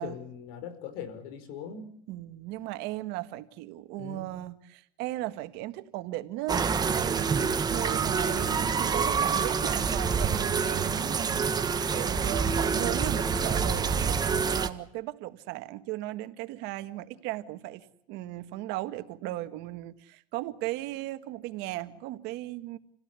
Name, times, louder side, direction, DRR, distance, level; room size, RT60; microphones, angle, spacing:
voice 1, 0.0-2.0 4.0-4.3 8.3-8.6 13.2-13.6, left 6 dB, 70° left, 5.1 m, -41 dB
voice 2, 2.1-11.5 11.9-14.2 14.5-22.8, right 16 dB, 65° right, 1.8 m, -36 dB
sound 1, 6.5-14.7, right 5 dB, 20° right, 1.5 m, -27 dB
28.5 x 17.0 x 8.3 m
supercardioid pair, 130°, 19 cm